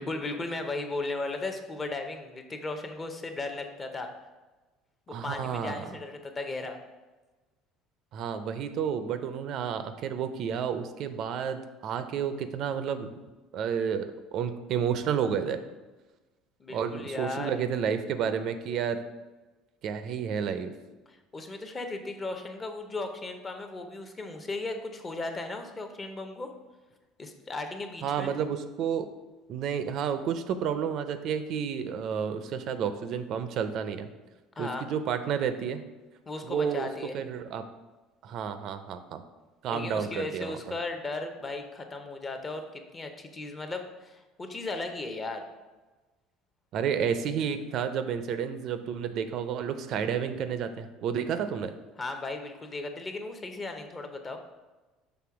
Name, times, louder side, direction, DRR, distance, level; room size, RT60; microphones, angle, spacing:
voice 1, 0.0-4.1 5.1-6.8 16.6-17.6 21.1-26.5 27.2-28.3 34.6-34.9 36.3-37.2 39.7-45.4 52.0-54.4, left 2 dB, 20° left, 5 dB, 0.6 m, -36 dB
voice 2, 5.1-5.8 8.1-13.1 13.5-15.6 16.7-19.0 19.8-20.7 28.0-29.1 29.5-34.1 34.6-35.8 36.4-36.9 37.1-37.6 38.2-39.2 39.6-40.6 46.7-51.7, right 7 dB, 50° right, 10 dB, 0.4 m, -31 dB
6.0 x 3.3 x 4.7 m, 1.2 s
cardioid pair, 145°, 0 cm